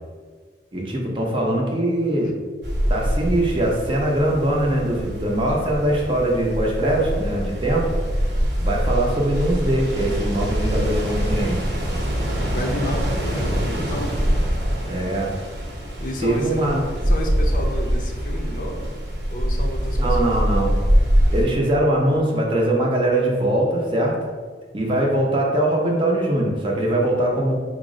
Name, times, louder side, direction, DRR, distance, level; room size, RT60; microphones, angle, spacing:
voice 1, 0.7-2.3 2.9-7.9 8.6-11.6 14.9-15.3 16.2-16.8 19.9-20.7 21.3-24.2 24.7-27.6, right 1 dB, 30° right, -2 dB, 0.6 m, -22 dB
sound 1, 2.6-21.4, equal, 65° right, 0.8 m, -24 dB
voice 2, 12.5-14.1 16.0-16.7 17.1-18.9 19.3-20.3, equal, 45° left, 1 dB, 0.5 m, -31 dB
4.2 x 2.0 x 3.6 m, 1.6 s
head